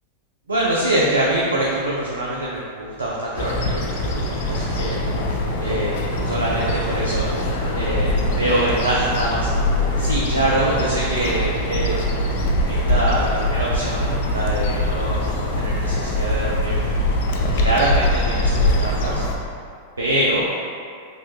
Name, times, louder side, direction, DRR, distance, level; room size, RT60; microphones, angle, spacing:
voice 1, 0.5-5.0 5.6-5.9 6.2-7.3 7.7-9.5 10.0-12.0 12.7-16.8 17.5-19.3 20.0-20.4, right 1 dB, 90° right, -4 dB, 0.3 m, -24 dB
sound 1, 3.3-16.3, right 1 dB, 45° right, 0.9 m, -34 dB
sound 2, 3.4-19.4, left 1 dB, 60° left, 0.4 m, -23 dB
3.0 x 2.2 x 3.1 m, 2.3 s
hypercardioid pair, 95°, 0 cm